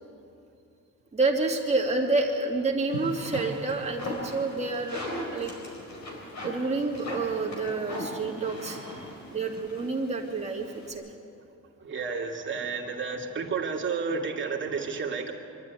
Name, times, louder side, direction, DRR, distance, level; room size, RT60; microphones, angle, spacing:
voice 1, 1.1-5.0 5.3-5.5 6.4-11.1, right 3 dB, 20° right, -1 dB, 2.3 m, -29 dB
sound 1, 2.9-10.9, equal, 60° left, 4.8 m, -38 dB
voice 2, 11.8-15.3, right 5 dB, 40° right, 0 dB, 2.5 m, -31 dB
24.5 x 12.5 x 9.7 m, 2.7 s
cardioid pair, 140°, 31 cm